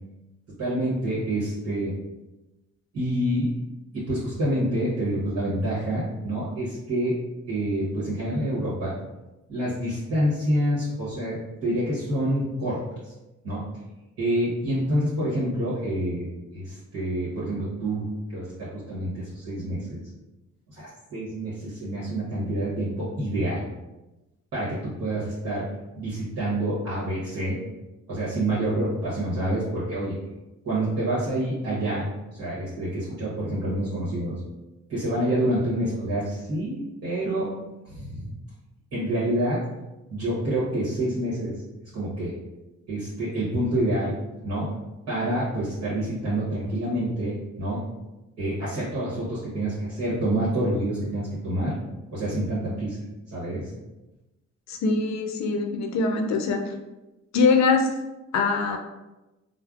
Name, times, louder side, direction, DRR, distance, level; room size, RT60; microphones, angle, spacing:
voice 1, 0.6-1.9 2.9-3.5 3.9-7.2 7.5-8.9 9.5-12.8 13.0-13.1 13.4-13.6 14.2-16.3 16.5-20.0 20.7-23.6 24.5-25.6 26.0-27.6 28.1-30.2 30.6-32.1 32.3-34.3 34.9-37.5 37.8-38.3 38.9-39.6 40.1-41.5 41.9-42.3 42.9-44.1 44.4-44.7 45.1-47.8 48.4-51.7 52.1-53.0 53.3-53.6, right 1 dB, 55° right, -9 dB, 1.1 m, -27 dB
voice 2, 54.7-56.6 57.3-57.9 58.3-58.8, left 4 dB, 65° left, 4 dB, 0.5 m, -22 dB
3.3 x 2.1 x 2.4 m, 1.0 s
cardioid pair, 90°, 30 cm